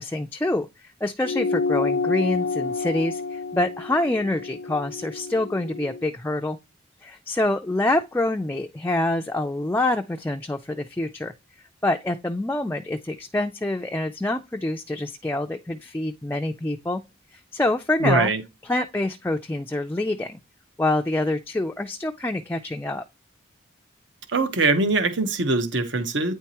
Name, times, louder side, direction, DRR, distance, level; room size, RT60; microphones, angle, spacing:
voice 1, 0.0-6.6 7.0-11.3 11.8-17.0 17.3-18.3 18.6-20.4 20.8-23.0, left 2 dB, 10° left, 0.3 m, -26 dB
sound 1, 1.2-6.0, left 4 dB, 70° left, 0.5 m, -29 dB
voice 2, 18.0-18.4 24.3-26.3, right 3 dB, 75° right, 1.1 m, -22 dB
9.2 x 4.6 x 2.9 m
head